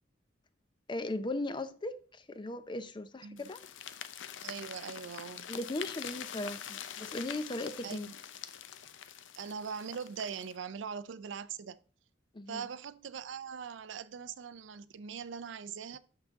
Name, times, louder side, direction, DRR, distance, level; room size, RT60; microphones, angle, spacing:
voice 1, 0.9-3.6 5.5-8.1 12.3-12.6, left 2 dB, 25° left, 0.5 m, -38 dB
sound 1, 3.4-10.6, left 9 dB, 90° left, 0.6 m, -45 dB
voice 2, 4.4-5.5 7.8-8.1 9.4-11.8 12.5-16.0, right 6 dB, 85° right, 0.4 m, -41 dB
6.6 x 5.9 x 3.6 m
head